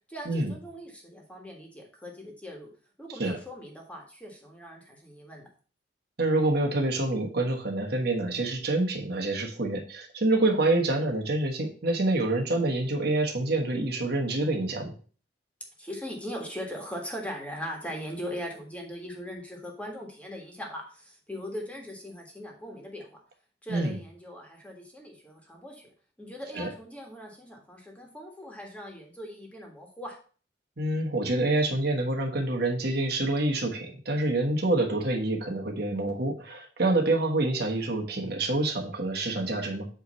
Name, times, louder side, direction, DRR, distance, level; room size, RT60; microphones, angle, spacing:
voice 1, 0.1-2.7 3.0-5.5 15.8-23.2 23.6-25.9 26.2-30.2, equal, 10° left, 0 dB, 1.6 m, -40 dB
voice 2, 6.2-14.9 23.7-24.0 26.5-26.7 30.8-39.9, right 2 dB, 65° right, 2 dB, 1.3 m, -27 dB
8.1 x 3.1 x 5.4 m, 0.40 s
head